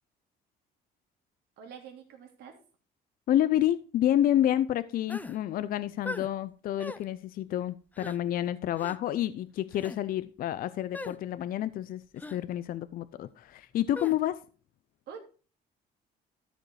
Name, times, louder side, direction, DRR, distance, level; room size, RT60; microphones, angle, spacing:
voice 1, 1.6-2.6 15.1-15.2, right 7 dB, 75° right, 2.9 m, -46 dB
voice 2, 3.3-12.0 12.3-14.4, left 12 dB, 60° left, 0.5 m, -29 dB
sound 1, 5.1-5.4 6.0-6.3 6.8-7.0 7.9-8.2 8.8-9.0 9.7-10.0 10.9-11.2 12.2-12.4 13.9-14.2, left 2 dB, 10° left, 0.6 m, -39 dB
13.0 x 5.2 x 4.8 m
cardioid pair, 110°, 17 cm